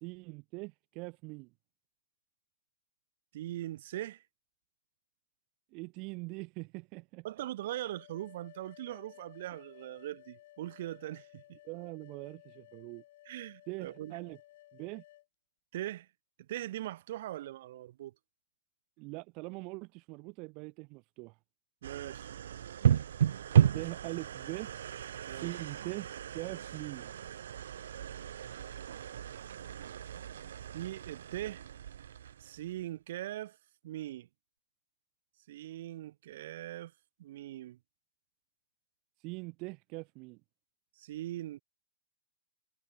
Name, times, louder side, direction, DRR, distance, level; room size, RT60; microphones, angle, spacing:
voice 1, 0.0-1.5 5.7-7.3 11.6-13.0 13.7-14.4 14.7-15.0 19.0-21.4 23.7-24.7 25.3-26.1 26.3-27.1 39.2-40.4, right 28 dB, 35° right, 0.6 m, -42 dB
voice 2, 3.3-4.2 7.2-11.6 13.2-14.2 15.7-16.1 16.5-18.1 21.8-22.3 25.2-25.5 30.7-31.6 32.4-33.6 33.8-34.3 35.5-36.9 37.2-37.8 41.0-41.6, right 14 dB, 55° right, 1.3 m, -41 dB
sound 1, 7.7-15.3, left 15 dB, 50° left, 6.0 m, -57 dB
sound 2, 21.8-32.9, right 9 dB, 80° right, 0.4 m, -33 dB
hypercardioid pair, 160°, 0 cm